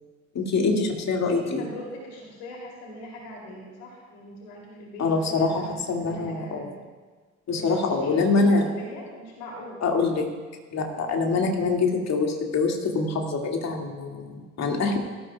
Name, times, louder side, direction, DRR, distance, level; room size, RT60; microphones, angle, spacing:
voice 1, 0.3-1.7 5.0-6.7 7.5-8.6 9.8-10.3 10.7-15.0, left 3 dB, 45° left, 1 dB, 2.2 m, -24 dB
voice 2, 1.3-6.8 7.5-9.9, left 1 dB, 70° left, -2 dB, 3.1 m, -41 dB
18.5 x 13.5 x 2.3 m, 1.5 s
figure-of-eight pair, 50°, 38 cm